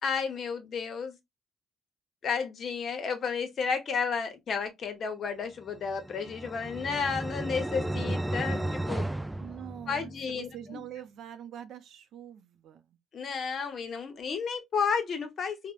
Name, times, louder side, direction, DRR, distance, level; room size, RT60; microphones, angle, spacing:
voice 1, 0.0-1.2 2.2-9.1 9.9-10.8 13.1-15.7, left 5 dB, 55° left, 0.8 m, -32 dB
sound 1, 5.8-10.3, right 1 dB, 10° right, 0.3 m, -34 dB
voice 2, 9.4-13.0, right 10 dB, 75° right, 0.5 m, -44 dB
3.3 x 2.1 x 2.3 m
cardioid pair, 90°, 0 cm